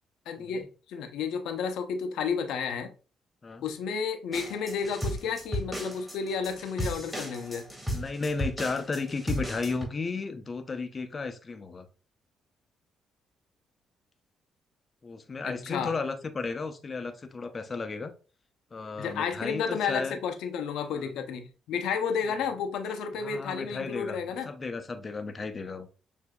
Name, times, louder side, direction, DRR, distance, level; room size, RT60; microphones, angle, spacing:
voice 1, 0.3-2.9 3.6-7.6 15.4-15.9 19.0-24.5, left 6 dB, 85° left, 0.7 m, -32 dB
sound 1, 4.3-9.8, equal, 5° right, 1.8 m, -35 dB
voice 2, 7.9-11.9 15.0-18.1 18.7-20.2 20.9-21.1 23.2-24.2 24.5-25.9, left 4 dB, 35° left, 0.6 m, -34 dB
6.7 x 2.7 x 2.2 m
cardioid pair, 90°, 0 cm